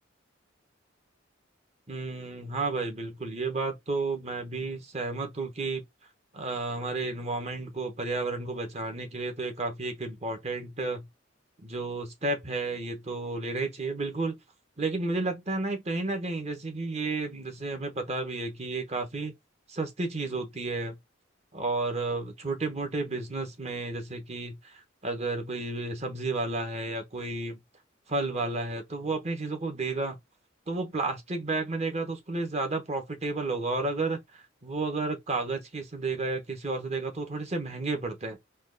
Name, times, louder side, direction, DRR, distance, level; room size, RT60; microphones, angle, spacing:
voice 1, 1.9-5.8 6.3-11.1 11.6-14.4 14.8-19.3 19.7-21.0 21.5-27.6 28.1-30.2 30.7-38.4, right 3 dB, 35° right, 1.0 m, -32 dB
4.4 x 2.4 x 3.8 m
head